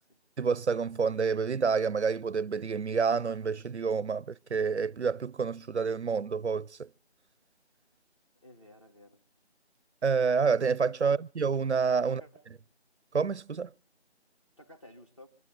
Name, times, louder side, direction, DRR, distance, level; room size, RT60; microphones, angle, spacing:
voice 1, 0.4-6.9 10.0-12.2 13.1-13.7, right 5 dB, 80° right, 0.6 m, -28 dB
voice 2, 8.4-9.2 11.0-11.2 12.0-12.4 14.6-15.3, left 1 dB, 25° left, 1.8 m, -53 dB
25.5 x 11.5 x 3.7 m
figure-of-eight pair, 180°, 34 cm